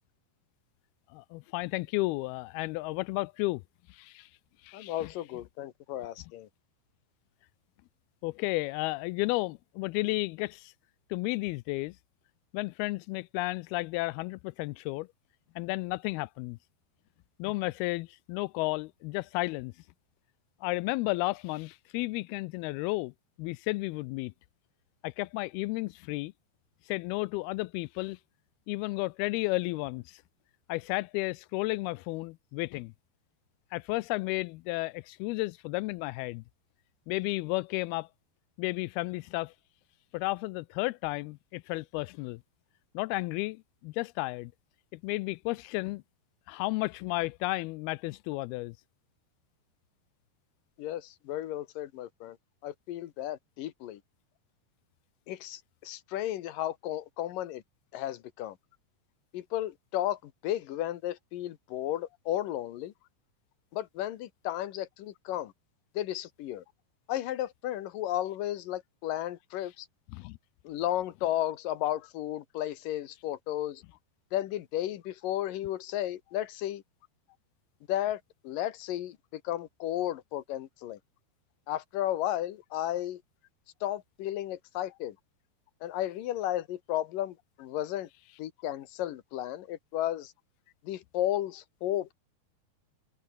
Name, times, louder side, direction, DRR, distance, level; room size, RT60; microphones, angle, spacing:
voice 1, 1.1-3.6 3.9-4.3 4.6-5.1 8.2-10.7 11.1-12.0 12.5-15.1 15.6-16.6 17.4-19.7 20.6-23.1 23.4-24.3 25.0-26.3 26.9-28.2 28.7-30.2 30.7-32.9 33.7-36.4 37.1-38.1 38.6-39.5 40.1-42.4 42.9-44.5 44.9-46.0 46.5-48.7 70.1-70.4, left 22 dB, 85° left, 2.2 m, -33 dB
voice 2, 4.7-6.5 50.8-52.4 52.6-54.0 55.3-57.6 57.9-58.6 59.3-62.9 63.7-65.5 65.9-66.6 67.1-69.9 70.6-73.8 74.3-76.8 77.9-81.0 81.7-83.2 83.8-85.2 85.8-88.1 88.4-90.3 90.8-92.1, left 13 dB, 65° left, 2.5 m, -34 dB
omnidirectional pair, 4.9 m